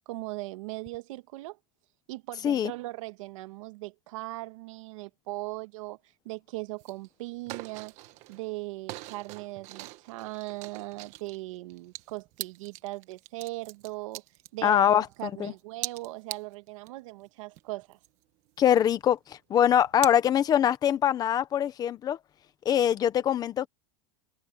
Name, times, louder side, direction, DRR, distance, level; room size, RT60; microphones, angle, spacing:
voice 1, 0.0-1.6 2.1-6.0 6.2-7.9 8.3-14.2 14.5-18.0, right 21 dB, 75° right, 1.6 m, -39 dB
sound 1, 6.8-7.1 7.3-8.5 8.9-15.2 15.6-16.9 17.3-17.4 17.6-19.2 19.7-20.1, right 18 dB, 45° right, 1.4 m, -42 dB
voice 2, 14.6-15.5 18.6-22.2 22.6-23.7, left 10 dB, 25° left, 0.9 m, -23 dB
supercardioid pair, 165°, 17 cm